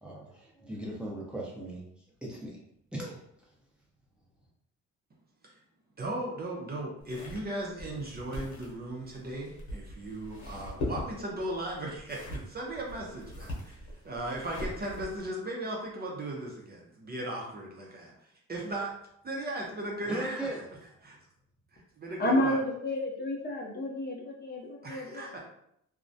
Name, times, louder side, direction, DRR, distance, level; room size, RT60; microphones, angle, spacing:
voice 1, 0.0-2.6 2.9-3.2 20.1-20.6, right 1 dB, 5° right, -4 dB, 0.8 m, -38 dB
voice 2, 6.0-18.1 18.5-18.9 19.2-20.4 21.0-21.2 21.7-22.6 24.8-25.4, right 1 dB, 30° right, -2 dB, 0.6 m, -37 dB
sound 1, 7.0-15.3, left 1 dB, 75° left, 0.9 m, -41 dB
voice 3, 22.2-25.4, left 1 dB, 35° left, -2 dB, 0.6 m, -31 dB
2.3 x 2.1 x 2.6 m, 0.73 s
cardioid pair, 90°, 30 cm